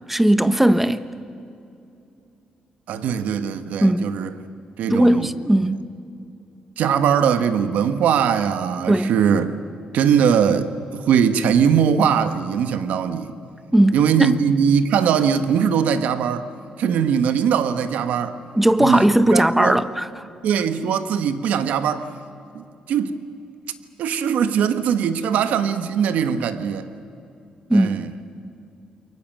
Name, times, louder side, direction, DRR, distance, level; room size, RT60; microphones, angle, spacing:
voice 1, 0.1-1.1 3.8-4.2 4.9-5.9 8.9-9.1 13.7-14.3 18.5-20.3 27.7-28.0, right 1 dB, 5° right, 1.1 m, -18 dB
voice 2, 2.9-4.3 4.8-5.3 6.8-9.6 9.9-13.3 13.9-16.5 16.8-18.4 18.8-19.8 20.4-22.1 22.5-23.1 24.0-26.9 27.7-28.1, right 7 dB, 80° right, 1.4 m, -21 dB
28.5 x 23.5 x 7.5 m
cardioid pair, 90°, 3 cm